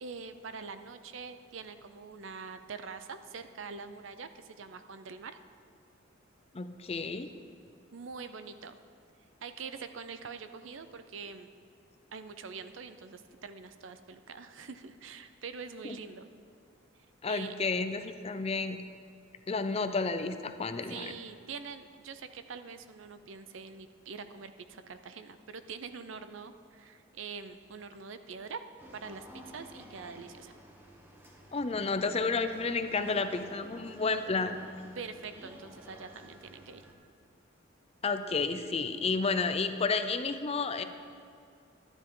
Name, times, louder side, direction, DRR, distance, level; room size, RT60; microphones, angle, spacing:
voice 1, 0.0-5.4 7.9-8.8 9.4-11.5 12.1-16.3 17.2-17.6 20.9-28.6 28.9-30.5 35.0-36.8, right 5 dB, 75° right, 10 dB, 0.6 m, -44 dB
voice 2, 6.5-7.3 15.8-16.0 17.2-18.8 19.5-21.1 31.5-34.6 38.0-40.8, left 4 dB, 30° left, 9 dB, 0.5 m, -31 dB
sound 1, 28.8-36.9, equal, 10° right, 1.0 m, -52 dB
12.5 x 10.0 x 3.8 m, 2.4 s
head